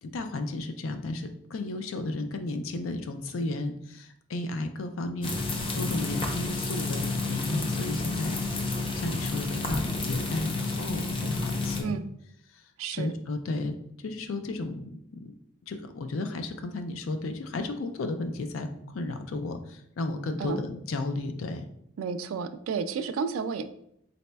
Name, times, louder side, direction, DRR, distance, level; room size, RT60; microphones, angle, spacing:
voice 1, 0.0-8.4 8.7-12.0 12.5-15.3 15.7-21.6, left 2 dB, 80° left, 7 dB, 0.4 m, -34 dB
sound 1, 5.2-11.8, left 3 dB, 25° left, 0.5 m, -30 dB
voice 2, 12.8-13.1 20.4-20.6 22.0-23.7, right 5 dB, 85° right, 11 dB, 0.3 m, -31 dB
4.1 x 4.0 x 2.2 m, 0.74 s
head